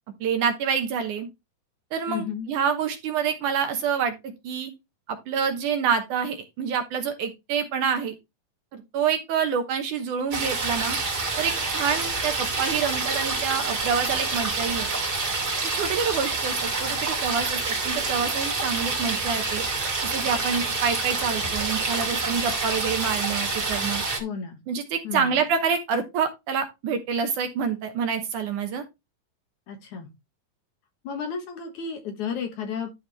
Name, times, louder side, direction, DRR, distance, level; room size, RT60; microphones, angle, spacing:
voice 1, 0.2-1.3 1.9-4.7 5.1-8.2 8.7-11.0 11.4-14.9 15.7-17.6 17.8-19.6 20.0-24.0 24.7-28.8, right 6 dB, 70° right, 6 dB, 2.3 m, -27 dB
voice 2, 2.1-2.5 24.2-24.6 25.0-25.3 29.7-30.1 31.0-32.9, left 6 dB, 60° left, 4 dB, 2.6 m, -32 dB
sound 1, 10.3-24.2, right 3 dB, 30° right, 2.3 m, -27 dB
12.0 x 4.7 x 3.4 m, 0.23 s
omnidirectional pair, 4.2 m